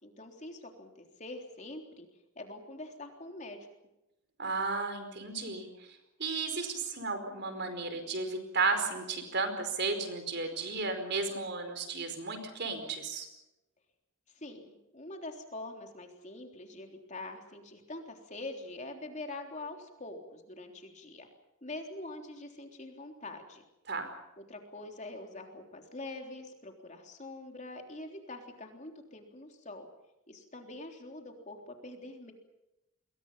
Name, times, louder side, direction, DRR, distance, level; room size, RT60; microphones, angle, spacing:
voice 1, 0.0-2.1 2.4-3.7 14.3-21.3 21.6-23.6 24.4-29.9 30.3-32.3, left 2 dB, 35° left, 3 dB, 3.6 m, -44 dB
voice 2, 4.4-5.7 6.2-13.3 23.9-24.1, right 4 dB, 55° right, 7 dB, 4.9 m, -33 dB
29.0 x 22.5 x 5.7 m, 0.92 s
head